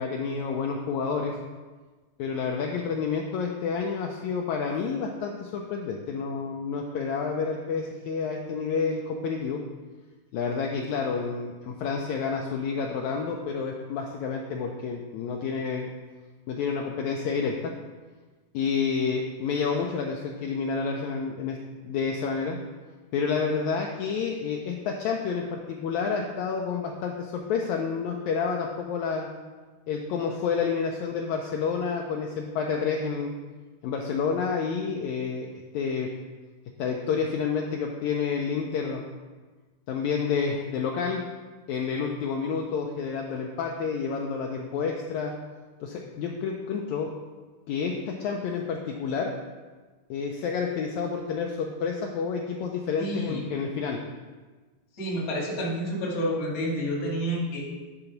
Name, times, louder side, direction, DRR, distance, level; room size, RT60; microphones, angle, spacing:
voice 1, 0.0-1.3 2.2-9.6 10.3-15.9 16.5-17.7 18.5-21.6 21.8-22.6 23.1-29.3 29.9-33.3 33.8-35.5 35.7-36.1 36.8-39.0 39.9-41.2 41.7-45.3 45.8-47.1 47.7-49.3 50.1-54.0, left 5 dB, 80° left, 1 dB, 1.7 m, -29 dB
voice 2, 53.0-53.4 54.9-57.7, equal, 35° left, -3 dB, 1.0 m, -29 dB
8.7 x 3.9 x 5.8 m, 1.3 s
omnidirectional pair, 3.8 m